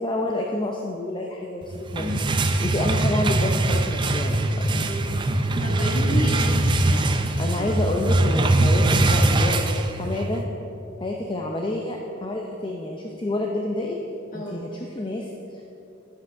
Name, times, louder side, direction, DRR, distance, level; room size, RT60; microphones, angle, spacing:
voice 1, 0.0-2.2 2.6-4.3 4.8-4.9 7.4-10.5 11.0-14.0 14.3-15.6, left 1 dB, 25° left, 0 dB, 0.6 m, -28 dB
sound 1, 1.7-10.4, right 2 dB, 25° right, 0.5 m, -22 dB
voice 2, 2.0-2.7 4.7-5.1 5.6-7.0 7.6-7.7 14.3-14.6, equal, 40° left, -3 dB, 2.3 m, -32 dB
10.5 x 7.9 x 5.7 m, 2.9 s
head